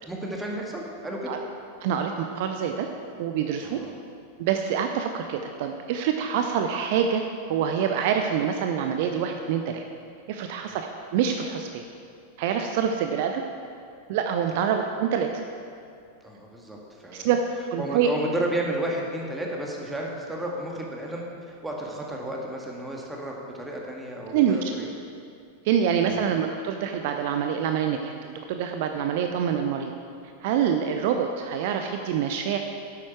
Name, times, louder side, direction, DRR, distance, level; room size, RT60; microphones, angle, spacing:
voice 1, 0.0-1.4 3.6-3.9 16.2-16.8 17.0-17.3 17.8-24.9 26.0-26.2, right 1 dB, 10° right, -1 dB, 1.8 m, -32 dB
voice 2, 1.8-2.9 3.2-3.8 4.4-9.8 10.3-11.8 12.4-13.4 14.1-15.3 17.1-17.4 17.7-18.1 24.3-24.7 25.6-29.9 30.4-32.6, right 8 dB, 50° right, 5 dB, 0.6 m, -26 dB
11.5 x 8.6 x 4.7 m, 2.4 s
figure-of-eight pair, 90°, 0 cm